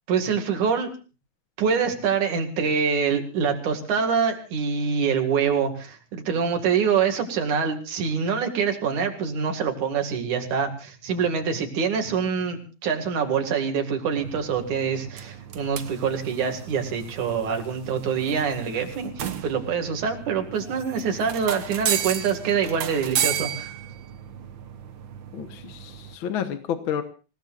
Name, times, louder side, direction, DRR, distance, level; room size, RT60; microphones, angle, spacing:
voice 1, 0.1-0.9 1.6-23.7, right 6 dB, 80° right, 5 dB, 3.6 m, -25 dB
sound 1, 14.2-26.2, right 9 dB, 60° right, 1.3 m, -34 dB
voice 2, 25.3-27.0, left 8 dB, 55° left, 8 dB, 1.5 m, -30 dB
28.0 x 17.5 x 2.5 m, 0.34 s
omnidirectional pair, 3.4 m